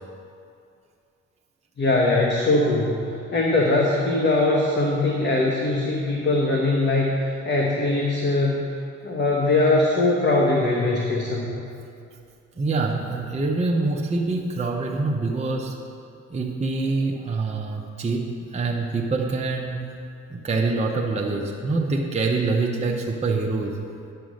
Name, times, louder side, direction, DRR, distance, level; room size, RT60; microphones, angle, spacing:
voice 1, 1.8-3.0 3.3-8.6 9.0-11.6, left 2 dB, 35° left, -1 dB, 1.2 m, -21 dB
voice 2, 12.6-15.8 16.3-19.8 20.3-23.8, right 3 dB, 20° right, -1 dB, 0.8 m, -25 dB
10.0 x 5.7 x 6.4 m, 2.5 s
cardioid pair, 90°, 30 cm